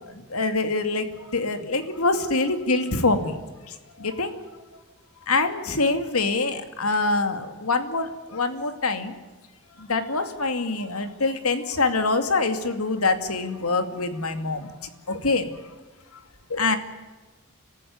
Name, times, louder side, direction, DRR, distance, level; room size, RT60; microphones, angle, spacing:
voice 1, 0.1-3.4 3.7-4.6 5.3-9.1 9.8-14.7 15.1-15.5 16.5-16.8, left 3 dB, 85° left, 8 dB, 2.4 m, -25 dB
27.0 x 15.0 x 9.5 m, 1.3 s
head